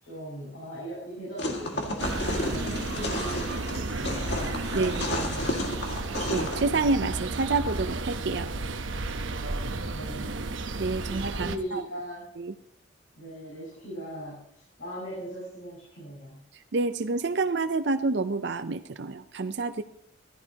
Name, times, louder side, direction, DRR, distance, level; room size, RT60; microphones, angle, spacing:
voice 1, 0.0-5.8 9.9-10.3 11.0-12.3 13.2-16.4, equal, 85° left, -6 dB, 6.6 m, -39 dB
sound 1, 1.4-6.6, left 1 dB, 55° left, 2.0 m, -32 dB
sound 2, 2.0-11.6, right 2 dB, 75° right, 0.9 m, -33 dB
voice 2, 4.7-5.1 6.3-8.5 10.8-11.8 12.4-12.5 16.5-19.8, right 3 dB, 60° right, 9 dB, 0.5 m, -28 dB
15.5 x 14.0 x 2.9 m, 0.68 s
head